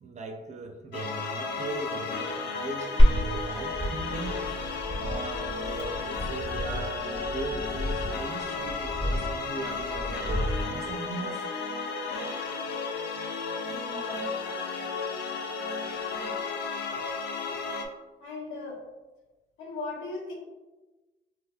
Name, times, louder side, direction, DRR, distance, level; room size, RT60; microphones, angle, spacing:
voice 1, 0.0-4.7 5.0-11.4, right 3 dB, 35° right, 4 dB, 0.5 m, -38 dB
sound 1, 0.9-17.9, left 4 dB, 60° left, 0.5 m, -33 dB
Glass, 3.0-11.0, equal, 30° left, 1.0 m, -28 dB
voice 2, 13.7-14.3 16.9-17.1 17.5-17.6 18.2-18.8 19.6-20.4, left 3 dB, 85° left, -2 dB, 0.8 m, -38 dB
3.2 x 2.9 x 2.3 m, 1.1 s
cardioid pair, 90°, 20 cm